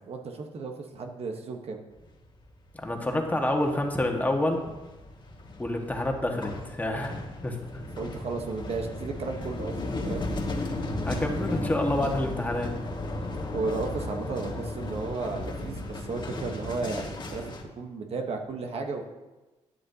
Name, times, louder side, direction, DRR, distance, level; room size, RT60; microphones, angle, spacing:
voice 1, 0.1-1.8 8.0-10.3 13.5-19.0, right 4 dB, 60° right, 3 dB, 1.1 m, -34 dB
sound 1, 1.9-2.4 2.6-17.6, left 2 dB, 40° left, 1.5 m, -35 dB
voice 2, 2.7-4.7 5.6-7.8 11.1-12.7, left 1 dB, 15° left, 2 dB, 1.5 m, -28 dB
12.0 x 9.8 x 2.8 m, 1.1 s
cardioid pair, 80°, 12 cm